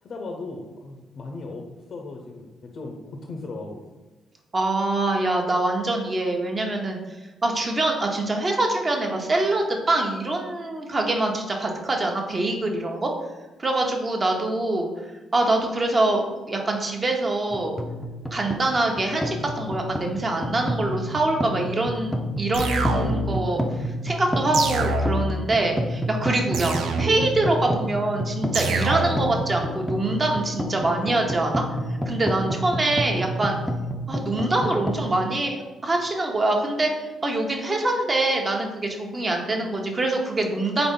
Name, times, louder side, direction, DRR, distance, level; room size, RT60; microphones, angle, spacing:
voice 1, 0.0-1.6 1.9-3.8, left 3 dB, 55° left, 2 dB, 0.6 m, -37 dB
voice 2, 4.5-7.0 7.4-13.1 13.6-14.9 15.3-17.7 18.3-31.6 32.1-33.6 34.1-40.9, right 2 dB, 30° right, 2 dB, 0.9 m, -24 dB
sound 1, 17.5-35.1, equal, 5° left, 0.5 m, -30 dB
sound 2, 22.5-23.4 24.5-25.4 26.5-27.4 28.5-29.4, right 2 dB, 80° right, 0.5 m, -26 dB
3.9 x 3.6 x 3.7 m, 1.2 s
cardioid pair, 90°, 0 cm